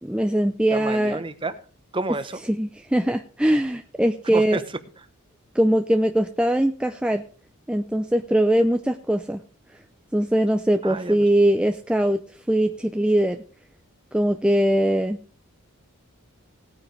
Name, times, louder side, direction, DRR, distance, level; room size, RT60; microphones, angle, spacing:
voice 1, 0.0-1.2 2.5-4.6 5.5-7.2 7.7-9.4 10.1-12.2 12.5-13.4 14.1-15.2, right 1 dB, 5° right, 6 dB, 0.5 m, -21 dB
voice 2, 0.7-1.6 1.9-2.4 4.3-4.6 10.8-11.2, right 3 dB, 25° right, 12 dB, 0.9 m, -29 dB
18.5 x 9.3 x 3.3 m, 0.39 s
head